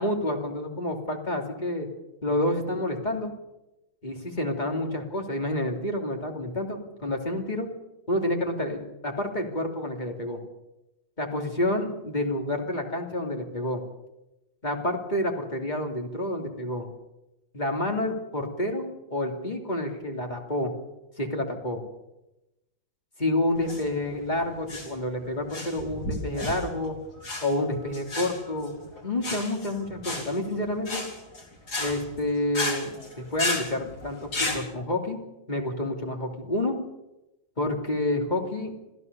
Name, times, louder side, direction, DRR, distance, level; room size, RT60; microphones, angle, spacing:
voice 1, 0.0-1.9 2.2-3.3 4.0-7.7 8.1-10.4 11.2-13.8 14.6-16.9 17.5-18.8 19.1-20.7 21.2-21.8 23.2-27.0 27.4-31.0 31.8-35.2 35.5-36.8 37.6-38.7, left 1 dB, 25° left, 2 dB, 2.9 m, -29 dB
sound 1, 23.5-34.6, left 2 dB, 60° left, 4.4 m, -33 dB
27.0 x 15.5 x 6.8 m, 0.96 s
omnidirectional pair, 2.0 m